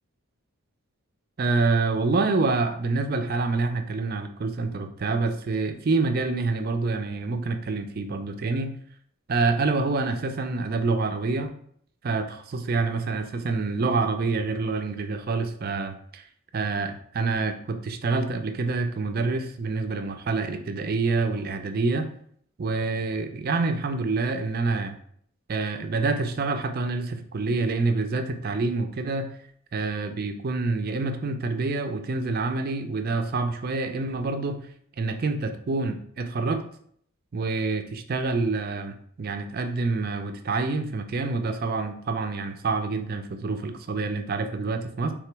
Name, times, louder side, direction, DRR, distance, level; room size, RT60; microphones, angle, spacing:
voice 1, 1.4-8.7 9.3-11.5 12.0-16.2 16.5-22.1 22.6-25.0 25.5-29.3 29.7-34.6 35.0-36.6 37.3-45.1, right 3 dB, 45° right, 7 dB, 0.4 m, -27 dB
3.7 x 2.9 x 4.6 m, 0.63 s
head